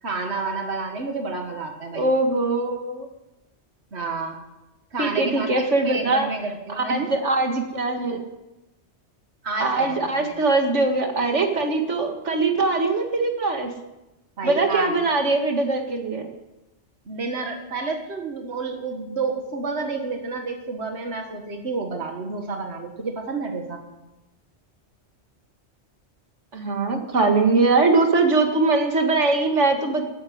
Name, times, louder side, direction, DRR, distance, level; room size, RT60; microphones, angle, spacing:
voice 1, 0.0-2.1 3.9-4.4 4.9-5.5 5.8-7.1 9.4-10.3 14.4-15.0 17.1-23.8, right 4 dB, 70° right, 3 dB, 1.9 m, -30 dB
voice 2, 1.9-3.1 5.0-6.3 6.8-8.2 9.6-13.7 14.4-16.3 26.5-30.0, right 3 dB, 90° right, 4 dB, 2.3 m, -21 dB
14.0 x 10.5 x 9.5 m, 0.99 s
omnidirectional pair, 1.2 m